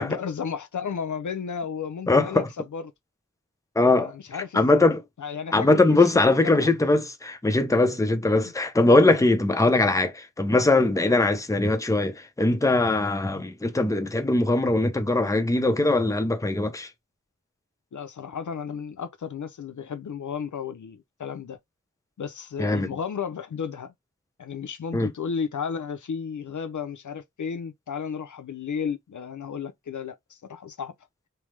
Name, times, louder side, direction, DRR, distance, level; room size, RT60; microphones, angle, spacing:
voice 1, 0.0-2.4 2.7-2.9 3.9-4.8 5.2-6.0 6.4-6.7 8.4-8.5 13.3-13.4 17.9-21.6 22.2-23.9 24.4-30.9, left 6 dB, 70° left, 0.4 m, -33 dB
voice 2, 2.1-2.5 3.8-4.1 4.5-5.0 5.5-16.9 22.6-22.9 24.9-25.1, left 2 dB, 10° left, 0.5 m, -21 dB
3.3 x 2.0 x 3.1 m
wide cardioid pair, 45°, 32 cm